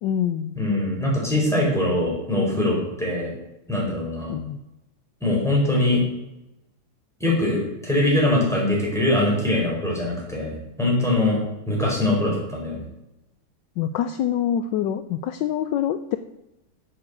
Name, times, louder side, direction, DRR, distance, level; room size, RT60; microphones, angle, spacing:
voice 1, 0.0-0.5 4.3-4.6 13.8-16.2, left 9 dB, 75° left, 11 dB, 1.1 m, -25 dB
voice 2, 0.5-3.3 3.7-4.4 5.2-6.0 7.2-10.5 10.8-11.4 11.7-12.8, left 1 dB, ahead, -3 dB, 4.6 m, -22 dB
8.7 x 7.9 x 8.2 m, 0.93 s
omnidirectional pair, 2.4 m